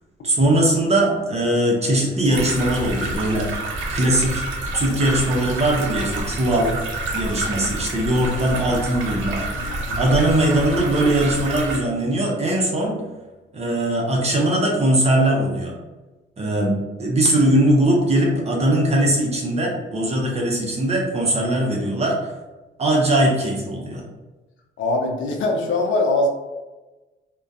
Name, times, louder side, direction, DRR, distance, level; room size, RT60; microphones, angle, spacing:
voice 1, 0.2-3.7 3.9-4.4 4.7-6.8 7.1-9.4 10.0-13.0 13.5-15.7 16.4-22.2 22.8-24.0, right 1 dB, 30° right, -1 dB, 0.7 m, -20 dB
sound 1, 2.3-11.8, right 2 dB, 75° right, 0.6 m, -28 dB
voice 2, 9.3-10.1 24.8-26.3, left 2 dB, 75° left, 2 dB, 0.5 m, -23 dB
2.5 x 2.2 x 2.4 m, 1.1 s
cardioid pair, 90°, 20 cm